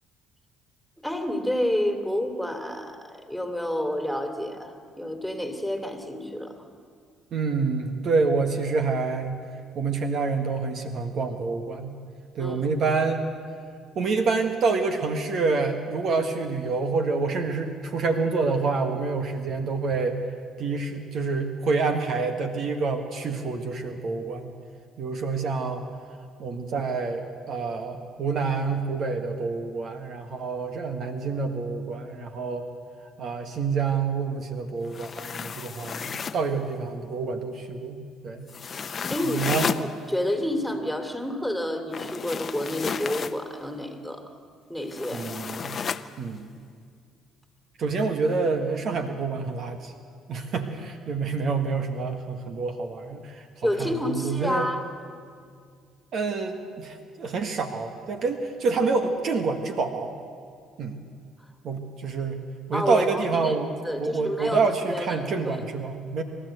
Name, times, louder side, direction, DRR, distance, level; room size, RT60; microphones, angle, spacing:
voice 1, 1.0-6.6 12.4-12.6 39.1-44.3 44.7-45.3 53.6-54.8 62.7-63.6 63.8-65.6, left 1 dB, ahead, 5 dB, 2.8 m, -29 dB
voice 2, 7.3-9.4 9.7-11.9 12.3-13.2 13.9-20.2 20.6-24.5 25.0-25.8 26.4-32.7 33.2-38.5 39.2-39.7 45.1-45.8 46.2-46.5 47.8-49.9 50.3-54.7 56.1-60.1 60.8-61.0 61.6-62.4 62.7-63.7 64.0-66.2, right 4 dB, 60° right, 5 dB, 1.6 m, -27 dB
sound 1, 34.8-36.5 38.5-39.9 41.9-43.4 44.9-46.1, left 6 dB, 45° left, 0.8 m, -32 dB
27.0 x 13.0 x 8.1 m, 2.2 s
supercardioid pair, 70°, 0 cm